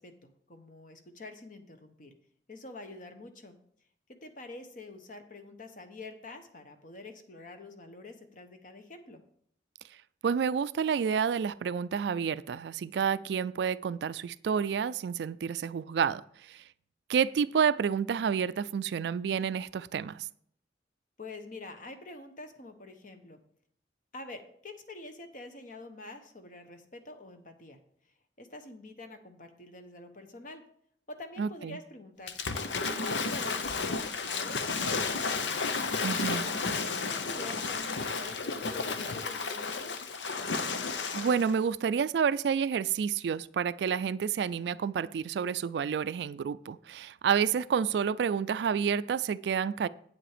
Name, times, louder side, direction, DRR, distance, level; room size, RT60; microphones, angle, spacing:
voice 1, 0.0-2.1 2.5-3.5 4.2-9.2 21.2-23.4 24.1-27.8 28.4-30.6 31.1-32.4 32.8-35.4 36.2-36.5 36.8-40.0, left 2 dB, 45° left, 1.1 m, -46 dB
voice 2, 10.2-16.6 17.1-20.3 31.4-31.8 36.0-36.4 41.1-49.9, right 7 dB, 65° right, 0.3 m, -29 dB
Waves surf / Splash splatter, 32.3-41.5, left 4 dB, 85° left, 0.8 m, -32 dB
8.8 x 7.5 x 5.0 m
head